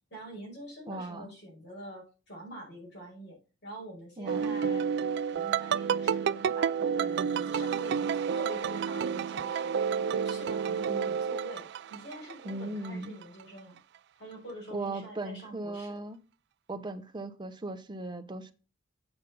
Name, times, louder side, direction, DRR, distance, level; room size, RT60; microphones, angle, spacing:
voice 1, 0.1-4.8 5.3-13.8 14.2-16.0, right 1 dB, 55° left, 4.9 m, -45 dB
voice 2, 0.9-1.3 4.2-4.6 12.4-13.2 14.7-16.2 16.7-18.5, right 2 dB, 25° right, 0.8 m, -38 dB
sound 1, 4.3-12.6 12.8-13.4, right 7 dB, 55° right, 0.3 m, -30 dB
8.1 x 5.5 x 5.4 m
head